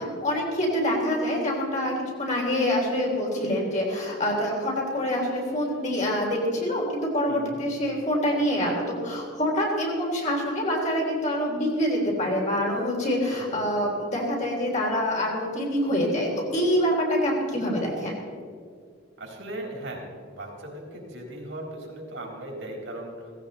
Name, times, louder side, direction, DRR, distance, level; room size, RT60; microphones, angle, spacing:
voice 1, 0.0-18.1, equal, 40° left, -2 dB, 3.6 m, -26 dB
voice 2, 7.3-7.6 13.3-13.6 19.2-20.0 20.3-23.3, right 1 dB, 75° right, -1 dB, 4.0 m, -38 dB
17.0 x 16.0 x 4.2 m, 2.1 s
head